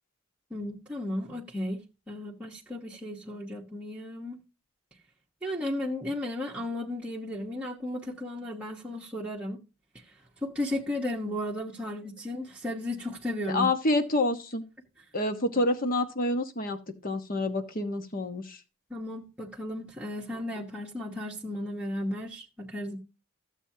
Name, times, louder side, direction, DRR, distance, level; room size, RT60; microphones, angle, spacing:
voice 1, 0.5-4.4 5.4-9.6 9.9-10.1 10.4-13.6 18.9-23.0, left 1 dB, 5° right, 1.1 m, -34 dB
voice 2, 13.5-14.6 15.1-18.6, left 2 dB, 40° left, 1.2 m, -28 dB
14.5 x 7.3 x 2.8 m
head